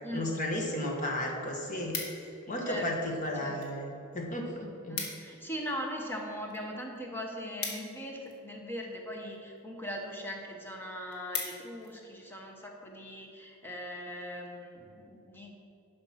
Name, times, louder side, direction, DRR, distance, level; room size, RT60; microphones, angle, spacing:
voice 1, 0.1-2.0 2.5-3.9 4.1-5.0, left 1 dB, 35° left, 1 dB, 1.5 m, -33 dB
sound 1, 0.7-0.8 1.2-2.5 3.2-3.8 4.1-4.2 4.4-4.5 4.7-5.4 5.7-8.6 9.3-9.6 10.1-10.2 10.6-10.7 10.9-11.9 12.4-12.6, left 4 dB, 80° left, 1.7 m, -40 dB
voice 2, 2.7-3.1 3.4-3.5 4.9-15.5, equal, 10° left, 0 dB, 1.2 m, -40 dB
11.5 x 5.2 x 5.8 m, 2.7 s
head